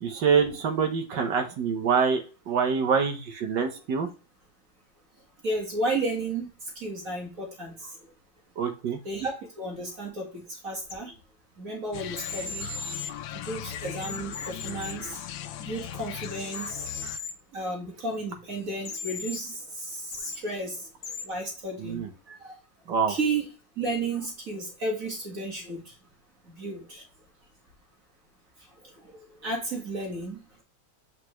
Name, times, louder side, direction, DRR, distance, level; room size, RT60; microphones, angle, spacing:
voice 1, 0.0-4.1 8.6-9.0 21.8-22.1 22.9-23.2, right 6 dB, 70° right, 5 dB, 1.6 m, -25 dB
voice 2, 5.4-6.5 6.8-7.9 9.0-11.1 11.6-12.7 13.3-15.2 15.6-16.9 17.5-20.9 21.2-22.6 23.1-23.5 23.8-25.9 26.5-27.0 29.0-30.4, right 2 dB, 45° right, -1 dB, 1.9 m, -33 dB
sound 1, 10.9-11.0 12.2-13.1 14.0-15.1 16.5-17.3 18.9-19.4 20.1-20.4 21.0-21.3, left 4 dB, 50° left, 0.7 m, -36 dB
sound 2, 11.9-17.2, left 11 dB, 85° left, 1.4 m, -38 dB
8.1 x 4.5 x 3.0 m, 0.35 s
omnidirectional pair, 2.1 m